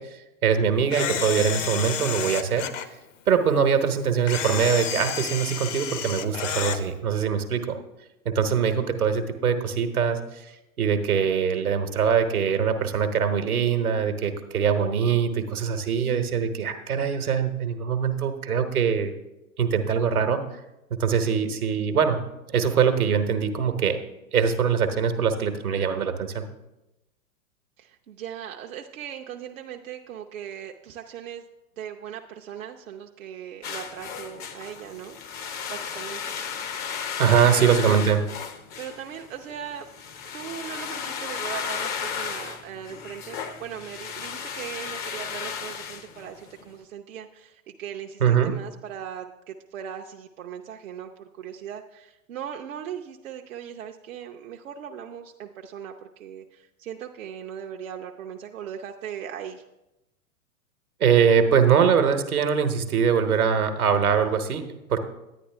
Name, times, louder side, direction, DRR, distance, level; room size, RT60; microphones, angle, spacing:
voice 1, 0.0-2.6 3.3-7.8 8.2-19.1 19.6-20.4 21.0-22.2 22.5-24.0 24.3-26.5 37.2-38.2 48.2-48.5 61.0-65.0, right 7 dB, 80° right, 7 dB, 1.2 m, -23 dB
Camera, 0.9-2.9 4.3-6.8, left 8 dB, 60° left, 0.9 m, -30 dB
voice 2, 27.8-31.4 31.8-36.4 37.3-37.8 38.8-39.9 40.3-59.6, right 9 dB, 65° right, 3 dB, 0.7 m, -39 dB
sound 1, 33.6-46.6, left 7 dB, 20° left, 0.5 m, -35 dB
10.0 x 9.9 x 3.4 m, 0.94 s
figure-of-eight pair, 100°, 43 cm